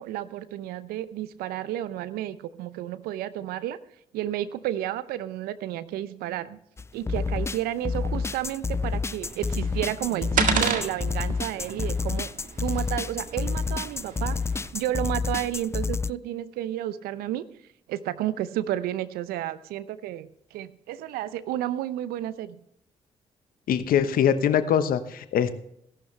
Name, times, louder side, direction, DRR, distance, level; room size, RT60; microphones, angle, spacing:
voice 1, 0.0-3.8 4.1-6.6 6.9-12.3 12.6-14.4 14.7-17.4 17.9-22.6, right 12 dB, 75° right, 15 dB, 0.7 m, -31 dB
sound 1, 6.8-16.1, left 4 dB, 15° left, 0.3 m, -29 dB
sound 2, 9.2-14.7, right 5 dB, 60° right, 1.9 m, -32 dB
voice 2, 23.7-25.6, left 8 dB, 65° left, 12 dB, 1.1 m, -23 dB
16.5 x 11.5 x 3.3 m, 0.74 s
hypercardioid pair, 40°, 16 cm